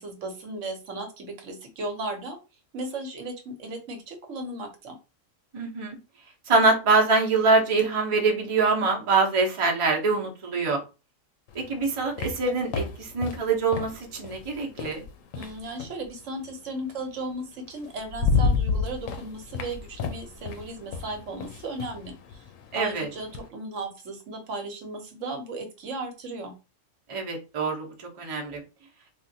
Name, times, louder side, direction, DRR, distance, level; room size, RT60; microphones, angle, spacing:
voice 1, 0.0-2.4 2.7-5.0 15.3-22.1 22.7-26.5, right 2 dB, 70° right, 4 dB, 1.1 m, -35 dB
voice 2, 5.5-6.0 6.5-10.8 11.5-15.0 22.7-23.1 27.1-27.9 28.2-28.6, right 3 dB, 30° right, 0 dB, 0.7 m, -24 dB
sound 1, 11.5-16.1 17.3-17.4 17.8-23.5, left 5 dB, 80° left, 1.0 m, -31 dB
3.5 x 2.4 x 2.6 m, 0.29 s
omnidirectional pair, 1.4 m